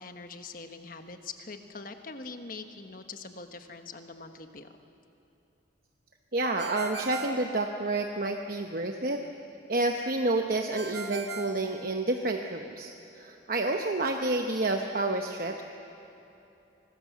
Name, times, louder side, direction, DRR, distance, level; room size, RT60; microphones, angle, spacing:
voice 1, 0.0-4.7, left 4 dB, 50° left, 6 dB, 1.3 m, -43 dB
voice 2, 6.3-9.2 9.7-15.6, right 2 dB, 50° right, 4 dB, 0.9 m, -29 dB
Ringtone, 6.6-8.3 10.8-12.4, right 3 dB, 65° right, 1.4 m, -40 dB
25.5 x 20.0 x 7.3 m, 2.9 s
head